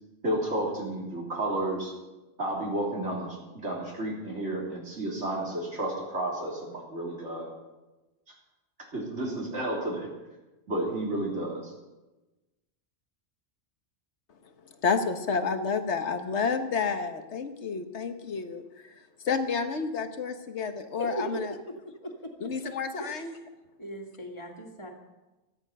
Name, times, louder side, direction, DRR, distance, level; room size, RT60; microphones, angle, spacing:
voice 1, 0.2-1.9 2.4-3.4 3.6-7.5 8.9-10.1 10.7-11.7, right 1 dB, 75° right, -4 dB, 3.7 m, -31 dB
voice 2, 14.8-18.6 19.2-21.5 22.4-23.3, left 5 dB, 70° left, 8 dB, 1.5 m, -30 dB
voice 3, 21.0-22.5 23.0-23.3 23.8-24.9, right 1 dB, 25° left, 0 dB, 2.2 m, -38 dB
17.0 x 13.5 x 5.5 m, 1.1 s
omnidirectional pair, 1.2 m